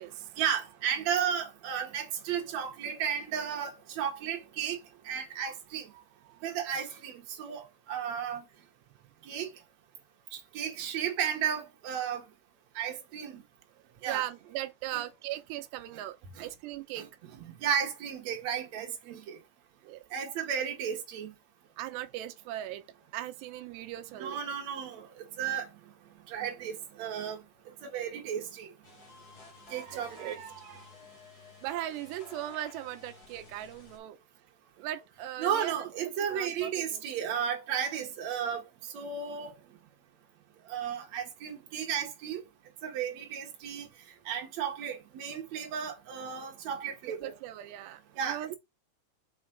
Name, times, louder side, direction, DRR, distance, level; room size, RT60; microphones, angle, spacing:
voice 1, 0.4-4.8 5.0-5.9 6.4-8.4 9.3-9.5 10.3-12.2 12.8-13.4 14.0-14.3 14.9-15.0 16.4-16.5 17.0-17.1 17.4-19.4 20.1-21.3 24.2-25.7 26.3-27.4 27.8-28.7 29.7-30.4 35.4-38.6 38.9-39.5 40.7-42.4 42.8-43.9 44.3-47.3 48.2-48.6, right 8 dB, 55° right, 2.2 m, -34 dB
voice 2, 5.9-6.4 14.1-17.1 19.8-20.1 21.8-22.8 23.1-24.4 29.7-30.9 31.6-34.2 34.8-35.9 36.3-37.0 47.1-48.6, right 14 dB, 90° right, 3.0 m, -39 dB
sound 1, 28.8-34.0, left 3 dB, 55° left, 1.0 m, -52 dB
5.7 x 5.4 x 3.9 m
omnidirectional pair, 4.8 m